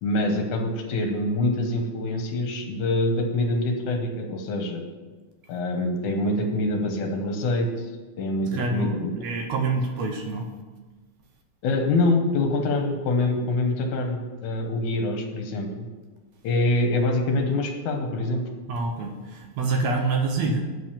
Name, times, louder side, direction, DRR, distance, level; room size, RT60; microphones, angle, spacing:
voice 1, 0.0-4.8 5.5-7.9 8.2-9.1 11.6-15.9 16.4-18.4, left 2 dB, 70° left, 3 dB, 2.2 m, -25 dB
voice 2, 8.5-10.5 18.7-20.6, right 3 dB, 80° right, 3 dB, 1.6 m, -26 dB
7.7 x 4.8 x 7.2 m, 1.3 s
omnidirectional pair, 4.1 m